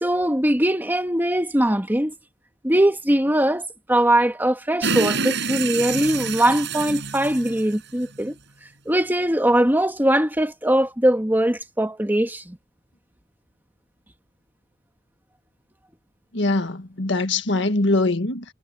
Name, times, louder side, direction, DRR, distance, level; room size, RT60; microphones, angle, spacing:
voice 1, 0.0-2.1 2.6-8.3 8.9-12.6, right 1 dB, 10° right, 1.8 m, -21 dB
sound 1, 4.8-8.3, right 5 dB, 65° right, 6.6 m, -27 dB
voice 2, 16.3-18.4, left 2 dB, 70° left, 1.9 m, -22 dB
head